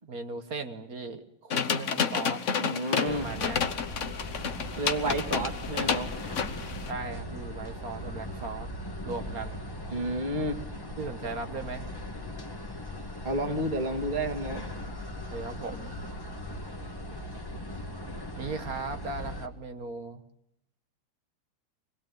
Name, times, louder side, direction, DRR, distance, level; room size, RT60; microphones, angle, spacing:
voice 1, 0.1-2.4 2.9-3.6 6.8-8.7 9.1-9.7 11.0-11.9 15.2-16.0 18.4-20.2, right 3 dB, 45° right, 8 dB, 1.7 m, -37 dB
sound 1, 1.5-6.9, left 6 dB, 45° left, 1.1 m, -30 dB
voice 2, 2.5-3.3 4.8-6.1 9.9-10.6 13.2-14.6, right 1 dB, 20° right, 6 dB, 2.1 m, -30 dB
sound 2, 3.1-19.5, left 1 dB, 10° left, 1.5 m, -39 dB
25.0 x 19.5 x 9.3 m, 0.79 s
omnidirectional pair, 2.3 m